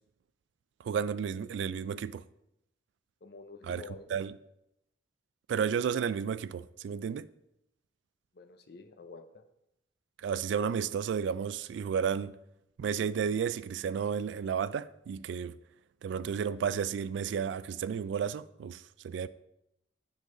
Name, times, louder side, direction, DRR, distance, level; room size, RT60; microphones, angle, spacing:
voice 1, 0.8-2.2 3.7-3.8 4.1-4.4 5.5-7.3 10.2-12.4 12.8-15.6 16.0-19.3, right 7 dB, 85° right, 0.3 m, -32 dB
voice 2, 3.2-4.2 8.3-9.5, left 4 dB, 60° left, 0.6 m, -49 dB
9.4 x 3.9 x 3.8 m
head